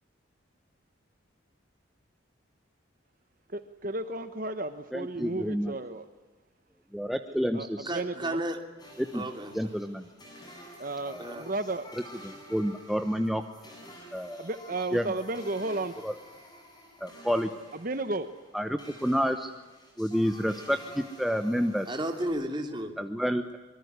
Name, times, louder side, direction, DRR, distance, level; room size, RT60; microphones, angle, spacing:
voice 1, 3.5-6.0 7.5-8.4 10.8-11.9 14.4-15.9 17.8-18.3, right 2 dB, 45° right, 10 dB, 1.1 m, -33 dB
voice 2, 4.9-5.8 6.9-7.9 9.0-9.2 9.5-10.1 11.1-11.4 12.2-13.4 14.1-14.5 14.9-15.1 16.0-16.1 17.0-17.5 18.5-19.5 20.0-22.0 23.0-23.6, equal, ahead, 6 dB, 0.9 m, -29 dB
voice 3, 7.9-8.6 9.1-9.7 11.2-11.5 21.9-22.9, right 1 dB, 20° right, 5 dB, 2.9 m, -33 dB
sound 1, 8.8-22.2, equal, 20° left, 7.6 m, -50 dB
25.0 x 23.5 x 9.6 m, 1.2 s
head